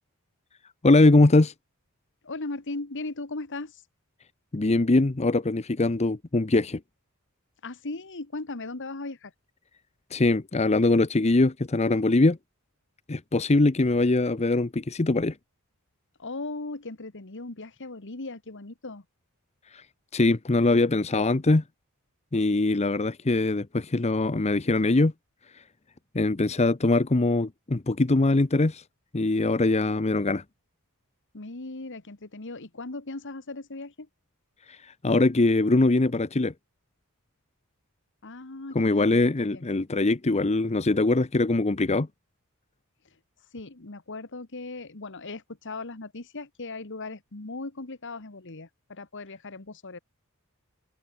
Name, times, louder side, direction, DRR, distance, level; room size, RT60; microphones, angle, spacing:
voice 1, 0.8-1.5 4.5-6.8 10.1-12.4 13.1-15.3 19.7-19.8 20.1-21.6 22.3-25.1 25.5-25.6 26.1-28.8 29.1-30.4 34.7-36.5 38.7-42.1, left 2 dB, 30° left, 0.8 m, -22 dB
voice 2, 2.2-3.8 7.6-9.3 16.2-19.0 31.3-34.1 38.2-39.6 43.5-50.0, left 2 dB, 60° left, 1.7 m, -38 dB
open air
head